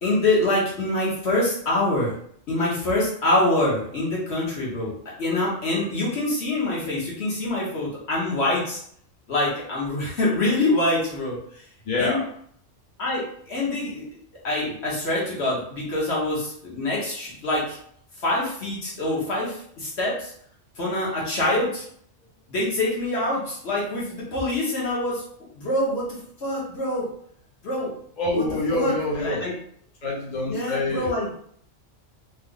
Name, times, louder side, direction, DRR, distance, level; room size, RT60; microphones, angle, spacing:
voice 1, 0.0-2.1 2.5-4.9 5.2-8.8 9.3-11.4 12.0-12.2 13.0-14.0 14.4-17.8 18.2-20.3 20.8-21.8 22.5-25.2 25.5-27.1 27.6-27.9 28.3-28.4 28.7-29.5 30.4-31.3, left 1 dB, 60° left, -5 dB, 1.4 m, -25 dB
voice 2, 11.9-12.2 28.2-29.4 30.0-31.1, left 2 dB, 45° left, -4 dB, 0.8 m, -26 dB
3.2 x 2.1 x 3.7 m, 0.62 s
omnidirectional pair, 1.3 m